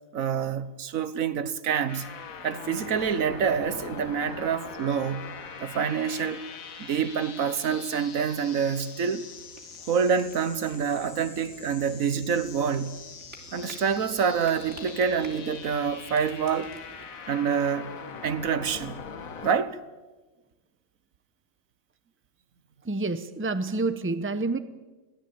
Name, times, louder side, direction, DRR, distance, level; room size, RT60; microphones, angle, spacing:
voice 1, 0.1-2.1 2.4-5.3 5.6-6.4 6.8-9.3 9.9-13.0 13.5-16.7 17.3-17.9 18.2-19.0 19.4-19.8, right 7 dB, 80° right, 1.4 m, -27 dB
sound 1, 1.9-19.5, left 6 dB, 85° left, 1.7 m, -42 dB
sound 2, 9.3-17.1, right 2 dB, 55° right, 3.4 m, -51 dB
voice 2, 22.8-24.6, right 3 dB, 10° right, 0.8 m, -28 dB
22.0 x 16.5 x 8.7 m
omnidirectional pair, 1.4 m